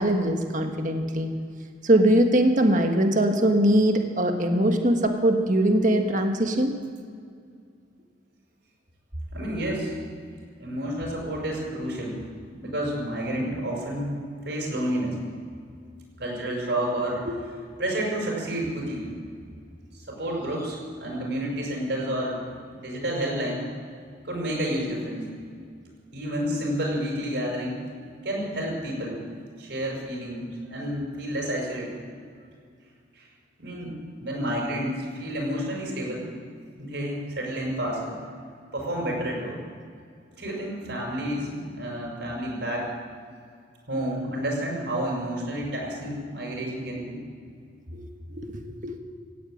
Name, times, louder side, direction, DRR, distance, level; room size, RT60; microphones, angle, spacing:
voice 1, 0.0-1.3 1.8-6.7 17.3-17.4 47.9-48.1 48.3-49.0, right 1 dB, 45° right, 4 dB, 1.6 m, -22 dB
voice 2, 9.3-10.0 10.6-12.2 12.5-14.2 14.4-15.2 16.2-17.2 17.8-19.1 19.9-22.4 22.8-23.6 24.2-25.2 26.1-27.8 28.2-29.2 29.6-30.4 30.7-31.9 33.1-33.3 33.6-36.3 36.8-38.2 38.7-39.6 40.4-42.9 43.9-47.2, right 1 dB, 65° right, -1 dB, 5.5 m, -30 dB
17.0 x 9.4 x 8.7 m, 2.2 s
head